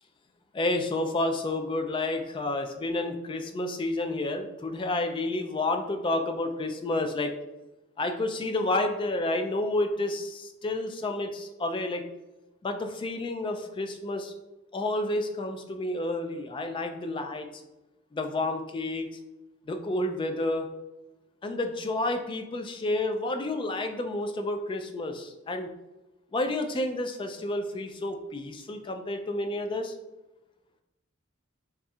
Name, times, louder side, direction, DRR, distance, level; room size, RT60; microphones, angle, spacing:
voice 1, 0.5-7.3 8.0-12.0 12.6-14.3 14.7-17.5 18.1-19.2 19.7-20.7 21.4-25.7 26.3-29.9, left 2 dB, 25° left, 5 dB, 0.3 m, -30 dB
4.2 x 3.6 x 2.3 m, 1.0 s
head